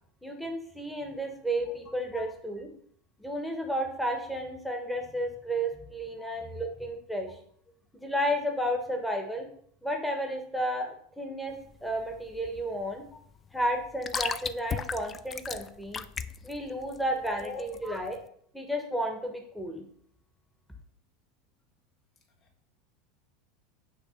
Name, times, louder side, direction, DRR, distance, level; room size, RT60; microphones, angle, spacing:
voice 1, 0.2-2.7 3.2-7.3 8.0-9.5 9.8-13.0 13.5-16.0 16.4-18.2 18.5-19.8, equal, ahead, 3 dB, 1.1 m, -32 dB
voice 2, 1.7-2.3 6.2-6.5 17.2-17.7, left 4 dB, 45° left, 4 dB, 1.1 m, -44 dB
sound 1, 11.5-18.2, left 6 dB, 25° left, 0.3 m, -37 dB
5.7 x 3.3 x 5.7 m, 0.62 s
hypercardioid pair, 90°, 0 cm